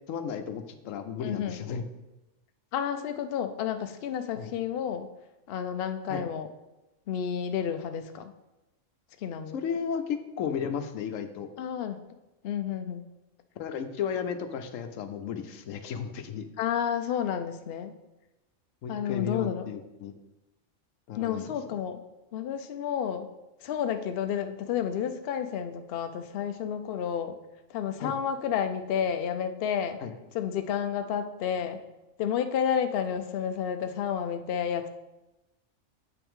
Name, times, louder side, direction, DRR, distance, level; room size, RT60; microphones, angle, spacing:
voice 1, 0.1-1.8 4.4-4.5 6.1-6.3 9.5-11.5 13.6-16.5 18.8-20.1 21.1-21.5 28.0-28.1 30.0-30.1, left 7 dB, 85° left, 8 dB, 1.0 m, -34 dB
voice 2, 1.2-1.6 2.7-5.1 5.5-6.5 7.1-8.3 9.2-9.6 11.6-12.0 12.4-13.1 16.6-17.9 18.9-19.7 21.2-22.0 22.3-23.3 23.6-27.4 27.7-30.0 30.3-31.8 32.2-34.9, left 8 dB, 60° left, 8 dB, 0.7 m, -31 dB
8.0 x 5.8 x 3.6 m, 0.99 s
omnidirectional pair, 1.3 m